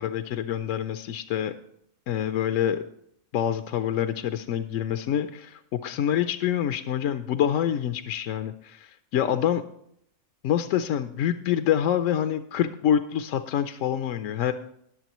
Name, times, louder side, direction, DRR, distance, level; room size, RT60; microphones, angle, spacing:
voice 1, 0.0-1.5 2.1-2.8 3.3-9.6 10.4-14.5, left 10 dB, 70° left, 9 dB, 0.9 m, -26 dB
21.5 x 7.4 x 3.0 m, 0.70 s
omnidirectional pair, 1.4 m